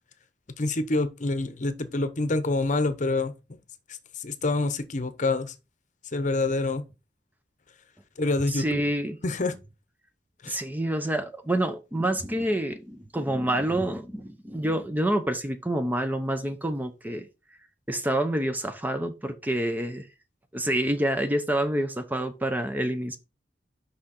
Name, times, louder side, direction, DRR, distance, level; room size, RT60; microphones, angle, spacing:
voice 1, 0.6-3.6 4.2-5.5 6.1-6.8 8.2-8.8 9.2-9.5 10.4-10.6, left 2 dB, 45° left, 0.8 m, -27 dB
voice 2, 8.5-9.2 10.5-17.3 17.9-20.1 20.5-23.2, right 1 dB, 10° right, 0.6 m, -27 dB
6.1 x 5.6 x 4.2 m
head